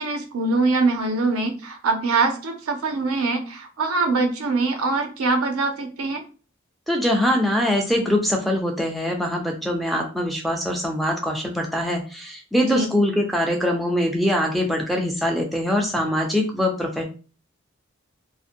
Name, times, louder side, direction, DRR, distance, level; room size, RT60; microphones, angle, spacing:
voice 1, 0.0-6.2 12.7-12.9, right 3 dB, 90° right, 6 dB, 0.5 m, -23 dB
voice 2, 6.9-17.0, left 1 dB, ahead, 0 dB, 0.3 m, -23 dB
2.5 x 2.1 x 2.5 m, 0.35 s
head